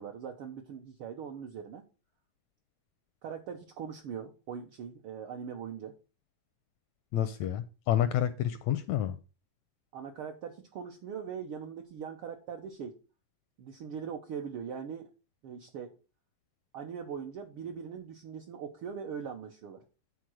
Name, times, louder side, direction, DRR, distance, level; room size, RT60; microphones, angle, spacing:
voice 1, 0.0-1.8 3.2-5.9 9.9-13.0 13.6-15.1 15.4-15.9 16.7-19.8, right 7 dB, 85° right, 4 dB, 1.2 m, -41 dB
voice 2, 7.1-9.2, left 11 dB, 80° left, 13 dB, 1.6 m, -29 dB
9.2 x 4.1 x 6.2 m, 0.33 s
omnidirectional pair, 3.6 m